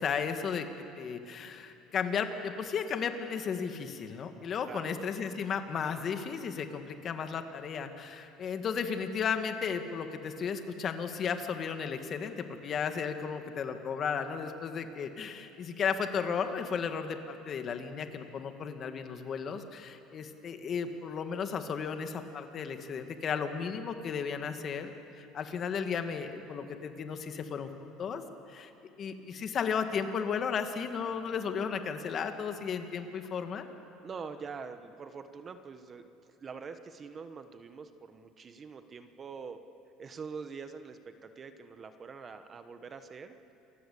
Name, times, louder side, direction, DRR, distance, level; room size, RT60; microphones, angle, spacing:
voice 1, 0.0-28.7 29.0-33.7, left 6 dB, 40° left, 7 dB, 1.8 m, -34 dB
voice 2, 4.7-5.1 34.0-39.6 40.0-43.4, right 5 dB, 30° right, 9 dB, 1.2 m, -44 dB
27.5 x 15.0 x 8.5 m, 2.9 s
cardioid pair, 125°, 0 cm